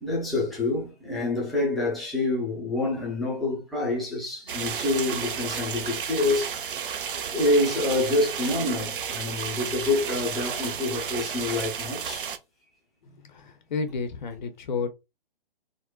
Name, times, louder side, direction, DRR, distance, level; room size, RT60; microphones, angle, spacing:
voice 1, 0.0-6.8 7.3-12.3, left 2 dB, ahead, 0.4 m, -27 dB
sound 1, 4.5-12.4, right 7 dB, 65° right, 0.5 m, -32 dB
voice 2, 13.0-14.9, left 5 dB, 50° left, 0.6 m, -32 dB
3.7 x 2.0 x 2.2 m
figure-of-eight pair, 135°, 29 cm